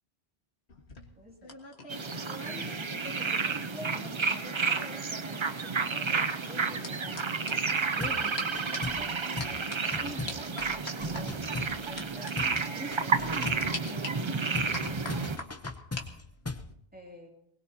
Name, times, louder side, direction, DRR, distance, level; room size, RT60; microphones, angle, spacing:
sound 1, 0.7-4.1 4.4-8.1 8.4-8.5 8.7-9.0 9.4-9.8 10.3-11.2 12.0-12.3 12.6-12.7 13.4-14.1 14.7-16.1 16.4-16.7, left 2 dB, 80° left, 2.0 m, -42 dB
voice 1, 1.2-1.6 2.1-15.5 16.9-17.3, equal, 10° right, 0 dB, 2.8 m, -48 dB
sound 2, 1.9-15.4, right 4 dB, 35° right, 0.5 m, -31 dB
sound 3, 8.0-8.3 8.5-9.1 9.4-9.6 9.9-12.1 12.4-12.6 12.9-13.7 14.5-16.7, left 3 dB, 15° left, 0.6 m, -38 dB
22.0 x 20.0 x 2.9 m, 0.74 s
omnidirectional pair, 1.1 m